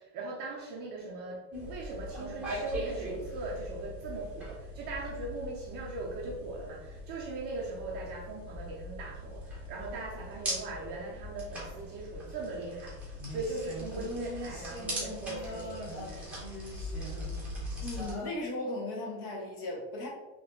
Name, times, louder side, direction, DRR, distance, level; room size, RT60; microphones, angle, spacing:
voice 1, 0.0-16.4, right 2 dB, 30° right, -2 dB, 0.4 m, -39 dB
sound 1, 1.5-18.1, equal, 5° right, 0.8 m, -41 dB
sound 2, 13.2-18.3, left 1 dB, 25° left, 0.9 m, -43 dB
voice 2, 17.8-20.1, left 2 dB, 55° left, -1 dB, 1.2 m, -36 dB
4.0 x 2.8 x 2.7 m, 1.1 s
supercardioid pair, 170°, 37 cm